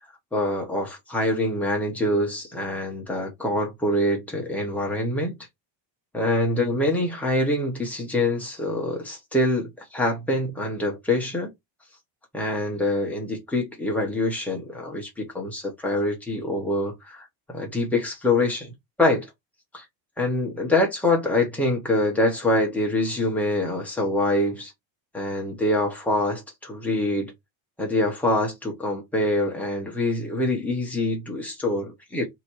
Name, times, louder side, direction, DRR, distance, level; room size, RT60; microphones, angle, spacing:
voice 1, 0.3-5.3 6.1-11.5 12.3-18.7 19.0-19.3 19.7-19.8 20.2-24.7 25.1-27.3 27.8-32.3, left 1 dB, 5° left, 0.8 m, -25 dB
2.9 x 2.8 x 4.3 m
cardioid pair, 180°, 48 cm